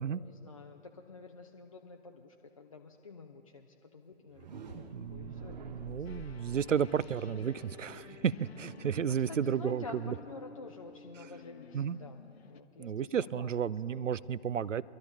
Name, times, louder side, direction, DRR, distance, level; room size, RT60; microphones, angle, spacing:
voice 1, 0.1-6.2 9.0-13.5 13.9-14.1, left 4 dB, 30° left, 2 dB, 0.4 m, -50 dB
sound 1, 4.2-10.1, right 2 dB, 35° right, 1.0 m, -49 dB
voice 2, 4.9-10.1 11.7-12.0 12.8-14.8, right 8 dB, 80° right, 20 dB, 0.5 m, -33 dB
sound 2, 6.0-12.6, left 5 dB, 55° left, 0.9 m, -53 dB
24.5 x 12.5 x 2.9 m, 2.9 s
figure-of-eight pair, 130°, 37 cm